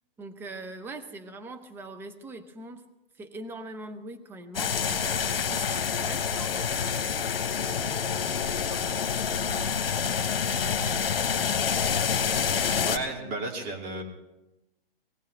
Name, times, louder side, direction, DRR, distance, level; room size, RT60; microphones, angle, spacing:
voice 1, 0.2-2.8 3.2-7.1 7.6-9.8 10.4-11.5, right 2 dB, 5° right, 8 dB, 0.6 m, -43 dB
sound 1, 4.5-13.0, left 7 dB, 80° left, 1.1 m, -27 dB
voice 2, 12.5-14.0, right 2 dB, 30° right, 0 dB, 2.7 m, -34 dB
20.5 x 15.5 x 3.3 m, 0.98 s
hypercardioid pair, 135°, 29 cm